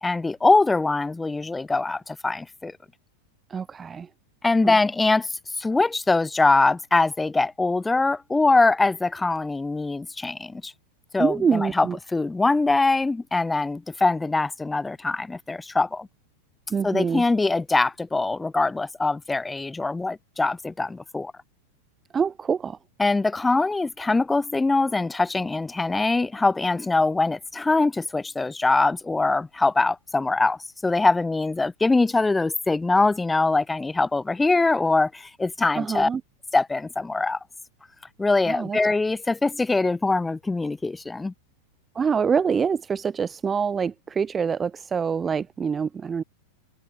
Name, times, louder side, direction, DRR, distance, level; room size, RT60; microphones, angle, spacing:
voice 1, 0.0-2.7 4.4-5.3 5.6-10.7 11.1-16.1 16.8-21.3 23.0-36.1 36.5-37.4 38.2-41.3, left 3 dB, 10° left, 2.6 m, -23 dB
voice 2, 3.5-4.1 4.6-4.8 11.2-12.0 16.7-17.2 22.1-22.8 35.8-36.2 38.5-38.8 41.9-46.2, right 6 dB, 20° right, 6.1 m, -25 dB
figure-of-eight pair, 90°, 0 cm